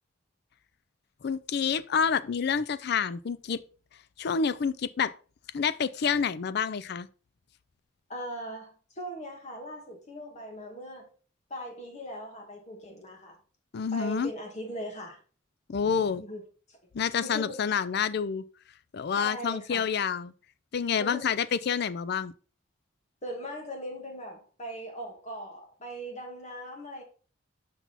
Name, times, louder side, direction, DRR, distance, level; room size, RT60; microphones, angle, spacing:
voice 1, 1.2-3.6 4.2-5.1 5.5-7.1 13.7-14.3 15.7-16.2 16.9-18.4 18.9-20.3 20.7-22.3, left 6 dB, 55° left, 0.4 m, -28 dB
voice 2, 8.1-11.1 11.5-13.4 13.9-15.2 15.9-16.4 16.7-16.8 17.2-17.6 19.2-19.8 21.0-21.2 23.2-27.0, equal, 35° left, 1.9 m, -40 dB
6.0 x 5.8 x 4.0 m
head